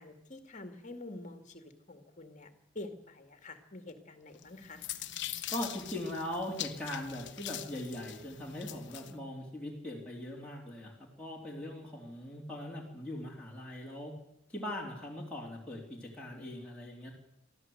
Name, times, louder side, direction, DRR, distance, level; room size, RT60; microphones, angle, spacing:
voice 1, 0.0-4.9, left 2 dB, 35° left, 7 dB, 2.2 m, -47 dB
sound 1, 4.4-9.1, left 12 dB, 60° left, 1.1 m, -42 dB
voice 2, 5.5-14.1 14.5-17.1, left 1 dB, 5° left, -4 dB, 3.3 m, -40 dB
23.5 x 14.0 x 7.9 m, 0.86 s
head